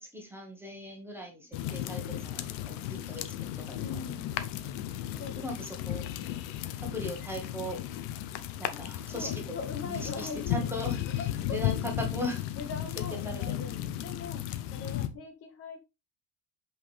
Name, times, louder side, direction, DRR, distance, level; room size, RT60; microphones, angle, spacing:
voice 1, 0.0-3.8 5.4-6.1 6.8-7.8 8.6-9.6 9.9-10.9 11.5-12.5 13.1-13.6, equal, 5° right, 2 dB, 1.3 m, -39 dB
sound 1, 1.5-15.1, left 12 dB, 70° left, 0.9 m, -35 dB
voice 2, 3.8-4.4 5.2-5.8 9.1-11.6 12.5-14.4 14.7-15.8, left 4 dB, 30° left, 4 dB, 0.9 m, -41 dB
6.0 x 5.5 x 3.3 m, 0.24 s
cardioid pair, 175°, 44 cm